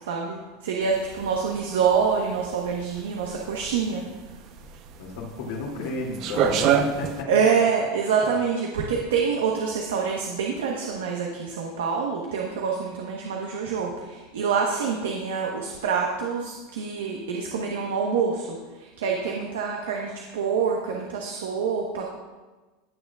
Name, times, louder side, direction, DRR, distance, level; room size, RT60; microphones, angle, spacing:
voice 1, 0.1-4.1 7.3-22.0, right 6 dB, 90° right, 0 dB, 1.1 m, -26 dB
sound 1, 0.8-7.2, right 8 dB, 50° right, 0.7 m, -27 dB
voice 2, 5.0-7.3, left 3 dB, 70° left, -2 dB, 2.6 m, -32 dB
16.5 x 6.6 x 2.4 m, 1.2 s
supercardioid pair, 120°, 0 cm